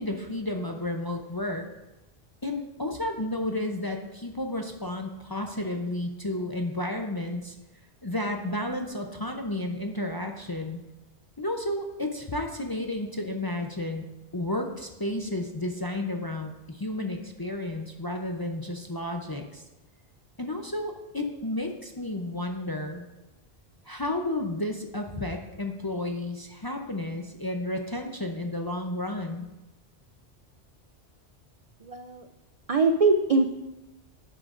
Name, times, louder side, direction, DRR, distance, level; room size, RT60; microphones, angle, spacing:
voice 1, 0.0-1.7 2.4-7.5 8.0-10.8 11.4-14.1 14.3-19.6 20.4-23.0 23.9-29.5, left 1 dB, 30° left, 3 dB, 0.5 m, -32 dB
voice 2, 31.8-32.3 32.7-33.5, right 3 dB, 60° right, 6 dB, 0.4 m, -22 dB
10.5 x 9.8 x 2.5 m, 1.0 s
omnidirectional pair, 1.1 m